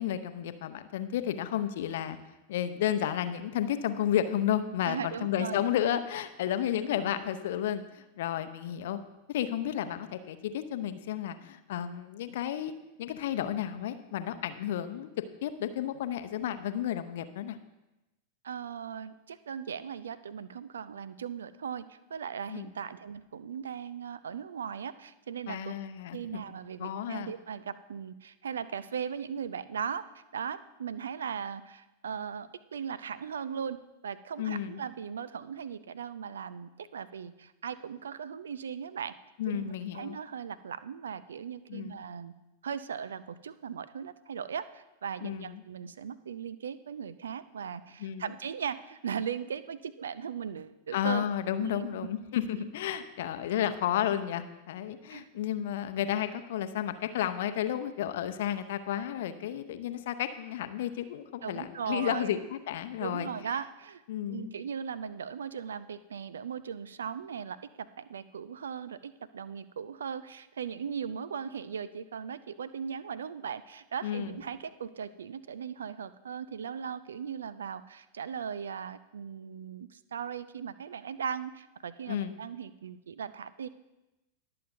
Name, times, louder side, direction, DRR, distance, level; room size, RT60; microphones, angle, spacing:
voice 1, 0.0-2.2 2.5-9.0 9.3-12.7 13.0-15.1 15.4-17.6 22.5-22.7 25.5-26.4 26.8-27.3 34.4-34.8 39.4-40.2 41.7-42.0 45.2-45.6 48.0-48.3 50.9-63.3 64.1-64.5 74.0-74.4 82.1-82.3, left 10 dB, 55° left, 10 dB, 0.7 m, -32 dB
voice 2, 4.8-5.6 18.4-25.7 26.1-33.8 34.0-39.1 39.5-42.3 42.6-51.3 51.6-51.9 55.1-55.3 61.4-62.4 63.0-64.0 64.3-83.7, right 7 dB, 65° right, 16 dB, 0.5 m, -38 dB
20.5 x 7.8 x 2.6 m, 1.0 s
figure-of-eight pair, 90°, 0 cm